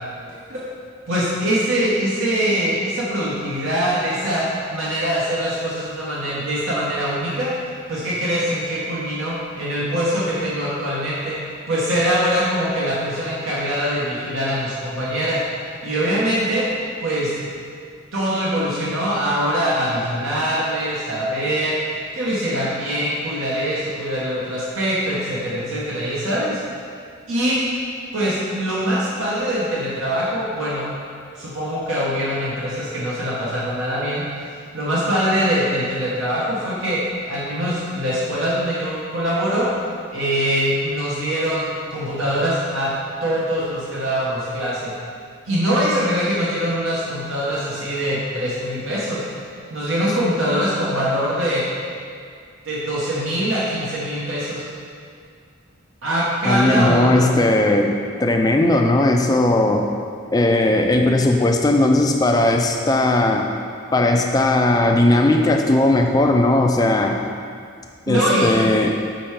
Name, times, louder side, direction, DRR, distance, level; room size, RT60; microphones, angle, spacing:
voice 1, 1.1-7.5 7.9-11.4 11.7-15.4 15.8-16.7 17.0-17.3 18.1-26.6 27.3-27.6 28.1-30.9 31.4-34.3 34.7-39.7 40.1-42.9 43.2-44.9 45.4-49.2 49.7-51.6 52.6-54.6 56.0-57.3 68.1-68.5, equal, 75° right, -7 dB, 0.9 m, -23 dB
voice 2, 56.4-59.9 60.3-63.5 63.9-67.2 68.1-69.0, left 2 dB, 20° left, 3 dB, 0.3 m, -17 dB
5.1 x 4.6 x 4.3 m, 2.2 s
head